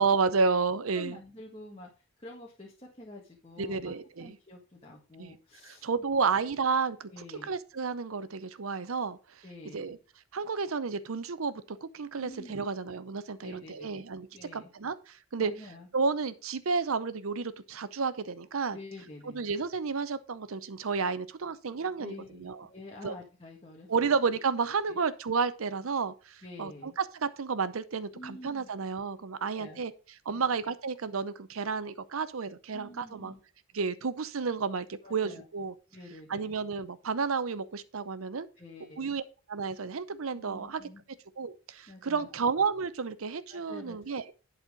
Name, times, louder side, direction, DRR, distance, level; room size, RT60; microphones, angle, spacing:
voice 1, 0.0-1.2 3.6-4.4 5.2-5.3 5.6-7.1 7.4-9.2 9.7-10.0 10.3-14.3 14.5-15.5 15.9-18.8 19.3-22.7 23.0-23.1 23.9-29.9 30.3-33.3 33.7-35.7 36.3-38.5 39.0-39.2 39.5-40.8 41.4-44.2, right 5 dB, 85° right, 0.7 m, -31 dB
voice 2, 0.9-5.9 7.1-7.5 9.4-10.0 12.2-12.6 13.4-14.0 14.3-14.7 15.4-15.9 18.7-19.4 22.0-24.4 24.9-25.0 26.4-27.0 28.1-28.7 29.4-29.8 30.3-30.5 32.7-33.4 35.0-35.4 35.9-36.6 38.6-39.2 40.3-41.0 41.9-42.3 43.5-44.2, left 1 dB, 25° left, 1.7 m, -48 dB
11.0 x 4.3 x 5.0 m
head